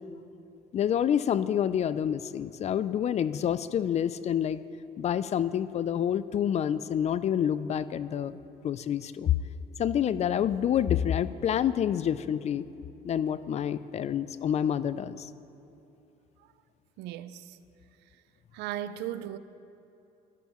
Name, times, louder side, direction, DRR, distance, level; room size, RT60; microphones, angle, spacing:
voice 1, 0.7-4.6 5.0-8.4 8.6-9.3 9.8-12.7 13.0-15.3, left 9 dB, 40° left, 0.4 m, -28 dB
voice 2, 17.0-17.6 18.5-19.4, right 12 dB, 90° right, 0.5 m, -36 dB
14.5 x 11.5 x 3.0 m
cardioid pair, 110°, 17 cm